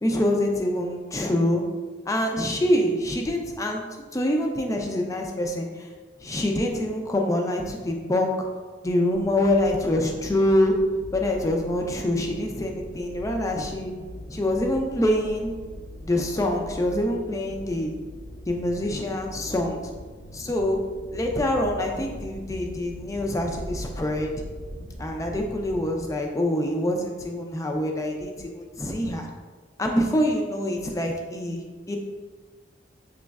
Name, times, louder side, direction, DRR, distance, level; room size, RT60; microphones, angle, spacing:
voice 1, 0.0-1.6 2.1-3.8 4.1-5.9 6.2-8.5 8.8-10.7 11.1-13.9 14.3-15.5 16.0-17.9 18.5-19.8 20.3-20.8 21.1-24.3 25.0-29.3 29.8-31.6 31.9-32.0, left 1 dB, 15° left, 2 dB, 0.4 m, -25 dB
sound 1, 9.1-26.0, equal, 65° left, 1.3 m, -41 dB
6.1 x 3.1 x 2.3 m, 1.4 s
head